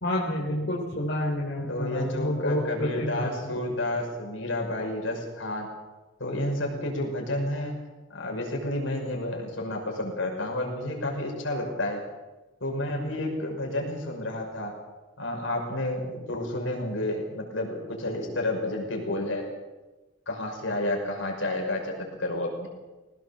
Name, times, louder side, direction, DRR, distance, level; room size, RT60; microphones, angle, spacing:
voice 1, 0.0-3.6, left 1 dB, 60° left, -3 dB, 3.8 m, -29 dB
voice 2, 1.7-5.7 6.2-7.7 8.1-12.0 12.6-14.7 15.2-19.4 20.3-22.7, left 1 dB, 80° left, 1 dB, 6.2 m, -30 dB
22.5 x 18.5 x 7.5 m, 1.2 s
head